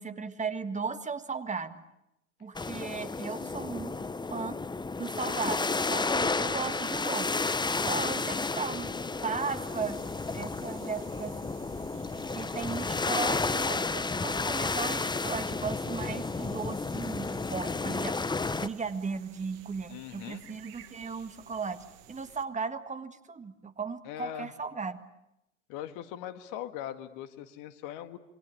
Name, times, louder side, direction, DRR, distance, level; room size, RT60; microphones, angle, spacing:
voice 1, 0.0-1.8 2.4-4.0 4.3-4.6 5.0-7.3 7.8-8.9 9.2-10.0 10.3-11.4 12.3-18.2 18.6-25.0, right 5 dB, 20° right, 10 dB, 1.7 m, -36 dB
sound 1, 2.6-18.7, left 3 dB, 10° left, 1.1 m, -32 dB
sound 2, 9.4-22.5, right 11 dB, 60° right, 2.0 m, -54 dB
voice 2, 19.9-20.4 24.1-24.5 25.7-28.2, left 11 dB, 55° left, 11 dB, 2.0 m, -40 dB
27.5 x 25.0 x 8.5 m, 0.83 s
hypercardioid pair, 75°, 38 cm